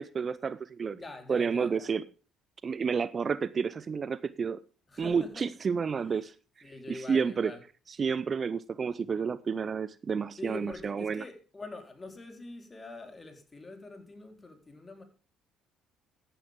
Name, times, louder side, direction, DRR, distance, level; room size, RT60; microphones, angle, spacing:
voice 1, 0.0-1.0 1.3-2.0 2.6-4.6 5.0-6.3 6.9-7.5 8.0-11.2, right 6 dB, 40° right, 0.6 m, -30 dB
voice 2, 0.9-1.9 4.9-5.5 6.0-6.3 6.6-7.6 10.4-15.0, left 2 dB, 25° left, 3.9 m, -44 dB
14.5 x 10.0 x 3.7 m
hypercardioid pair, 50°, 0 cm